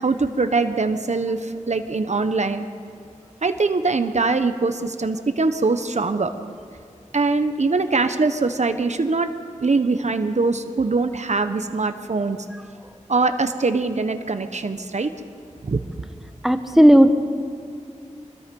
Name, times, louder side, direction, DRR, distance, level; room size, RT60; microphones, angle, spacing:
voice 1, 0.0-2.7 3.4-6.3 7.1-9.3 9.6-12.4 13.1-15.1 15.6-15.8, right 3 dB, 65° right, 9 dB, 1.0 m, -22 dB
voice 2, 16.4-17.1, equal, 5° right, 8 dB, 1.2 m, -13 dB
25.0 x 20.5 x 5.4 m, 2.3 s
wide cardioid pair, 80°, 13 cm